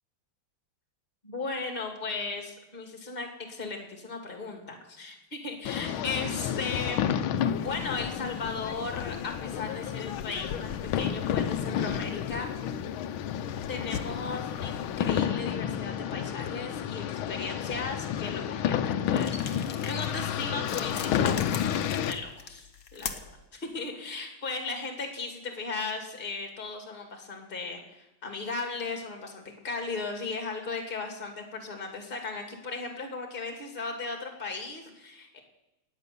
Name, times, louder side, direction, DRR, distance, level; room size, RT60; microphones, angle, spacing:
voice 1, 1.2-7.0 7.6-13.0 13.7-21.4 22.0-23.2 23.5-35.4, left 4 dB, 25° left, 4 dB, 2.4 m, -36 dB
sound 1, 5.7-22.1, left 9 dB, 90° left, 1.5 m, -31 dB
sound 2, 7.4-15.2, left 7 dB, 75° left, 1.4 m, -44 dB
sound 3, 19.1-23.4, left 6 dB, 50° left, 1.4 m, -40 dB
19.0 x 9.0 x 6.9 m, 0.94 s
omnidirectional pair, 2.2 m